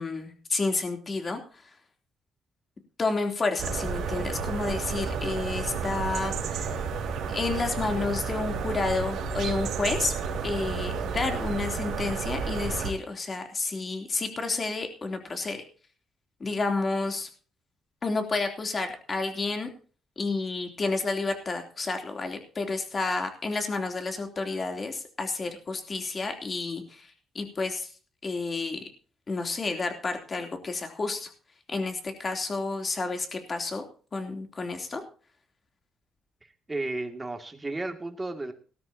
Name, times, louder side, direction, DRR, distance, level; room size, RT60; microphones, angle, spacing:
voice 1, 0.0-1.6 3.0-6.7 7.3-10.1 10.4-15.6 16.4-17.3 18.0-19.7 20.2-27.9 28.2-28.8 29.3-31.3 31.7-33.8 34.1-35.0, left 3 dB, 35° left, 4 dB, 3.2 m, -30 dB
sound 1, 3.6-12.9, right 5 dB, 75° right, 2.6 m, -31 dB
voice 2, 36.7-38.5, right 2 dB, 20° right, 6 dB, 2.4 m, -33 dB
18.0 x 13.0 x 2.9 m, 0.39 s
cardioid pair, 90°, 0 cm